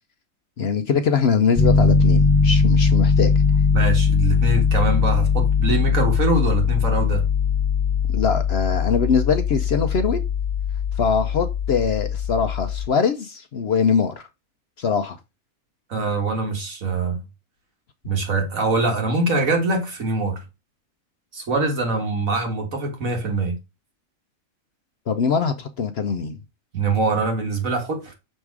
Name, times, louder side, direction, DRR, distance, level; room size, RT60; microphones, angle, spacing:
voice 1, 0.6-3.3 8.1-10.2 11.0-14.2 14.8-15.2 25.1-26.4, left 6 dB, 55° left, 0.8 m, -22 dB
Piano, 1.6-12.9, left 5 dB, 30° left, 0.4 m, -20 dB
voice 2, 3.7-7.3 15.9-17.2 18.0-20.4 21.3-23.5 26.7-28.1, right 3 dB, 70° right, 2.2 m, -23 dB
6.4 x 3.6 x 4.7 m
omnidirectional pair, 1.5 m